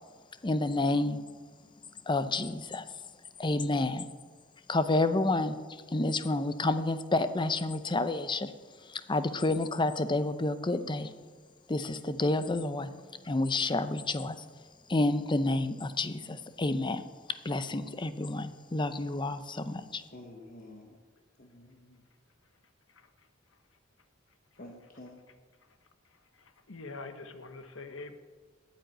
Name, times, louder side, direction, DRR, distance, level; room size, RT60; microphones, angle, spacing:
voice 1, 0.4-1.2 2.1-2.9 3.4-4.1 4.7-5.6 5.9-8.5 8.9-11.1 11.7-12.9 13.2-14.4 14.9-17.0 17.4-20.0, left 2 dB, 25° left, 11 dB, 0.6 m, -29 dB
voice 2, 20.1-21.0 21.4-22.0 24.6-25.2, left 1 dB, 45° left, 1 dB, 1.2 m, -49 dB
voice 3, 26.3-28.1, left 3 dB, 75° left, 9 dB, 1.1 m, -44 dB
9.4 x 8.9 x 9.2 m, 1.5 s
head